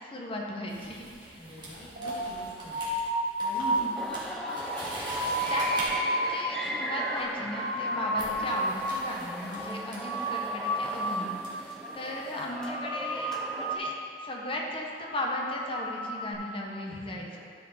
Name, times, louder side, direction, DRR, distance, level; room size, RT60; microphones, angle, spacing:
voice 1, 0.1-1.4 3.7-3.9 5.5-13.9 14.2-17.4, left 1 dB, 30° left, -1 dB, 1.0 m, -36 dB
sound 1, 0.7-5.9 7.1-7.4 8.1-12.5, right 1 dB, 25° right, 2.0 m, -44 dB
voice 2, 1.4-2.8 3.4-3.8 16.8-17.4, equal, 55° left, -7 dB, 1.9 m, -44 dB
sound 2, 2.0-8.9 9.2-9.7 10.0-11.4 11.7-12.2 12.5-13.9 14.3-14.6 15.0-16.3, right 1 dB, 45° right, 1.8 m, -32 dB
sound 3, 4.0-13.8, equal, ahead, 0.5 m, -38 dB
13.0 x 5.1 x 4.2 m, 2.2 s
head